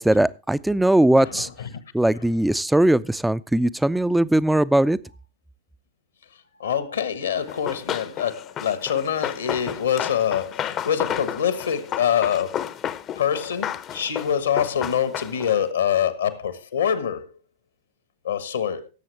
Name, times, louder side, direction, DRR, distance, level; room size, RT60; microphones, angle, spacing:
voice 1, 0.0-1.5 1.9-5.0, right 1 dB, 5° right, 0.4 m, -19 dB
voice 2, 1.2-1.7 6.6-12.7 13.2-17.3 18.2-18.9, left 8 dB, 70° left, 1.3 m, -25 dB
Run, 7.5-15.6, left 10 dB, 30° left, 0.7 m, -32 dB
17.0 x 7.6 x 3.3 m
figure-of-eight pair, 90°, 0 cm